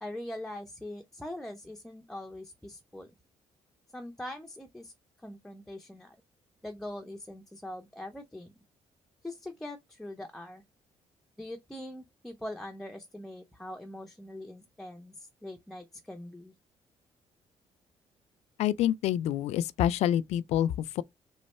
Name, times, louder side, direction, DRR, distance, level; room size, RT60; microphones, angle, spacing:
voice 1, 0.0-3.1 3.9-4.9 5.2-6.2 6.6-8.5 9.2-10.6 11.4-16.5, left 1 dB, 5° left, 0.4 m, -42 dB
voice 2, 18.6-21.0, left 11 dB, 80° left, 0.4 m, -27 dB
3.5 x 3.1 x 4.1 m
cardioid pair, 155°, 11 cm